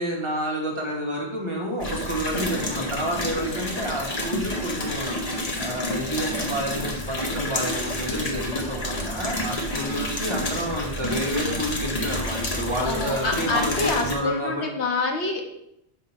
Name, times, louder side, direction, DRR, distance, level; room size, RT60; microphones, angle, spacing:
voice 1, 0.0-14.7, equal, 25° right, -2 dB, 1.4 m, -29 dB
sound 1, 1.8-14.2, left 1 dB, 35° left, 1.0 m, -29 dB
voice 2, 2.5-2.8 6.2-6.6 9.7-10.2 12.8-15.4, left 3 dB, 70° left, 2 dB, 1.4 m, -28 dB
5.6 x 4.7 x 5.9 m, 0.79 s
omnidirectional pair, 1.2 m